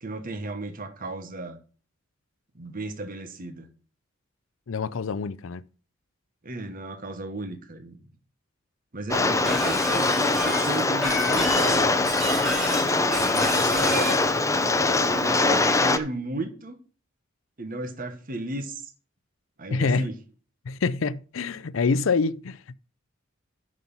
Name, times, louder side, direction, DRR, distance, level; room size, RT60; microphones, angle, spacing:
voice 1, 0.0-1.6 2.5-3.7 6.4-8.0 8.9-11.9 12.5-14.2 15.0-16.8 17.6-18.9 19.6-20.1, right 2 dB, 45° right, 1.3 m, -34 dB
voice 2, 4.7-5.6 19.7-20.1 20.7-22.7, left 4 dB, 75° left, 0.5 m, -26 dB
Rain, 9.1-16.0, left 3 dB, 15° left, 0.7 m, -23 dB
Shatter, 9.5-14.2, equal, ahead, 3.0 m, -31 dB
9.4 x 6.3 x 5.5 m
head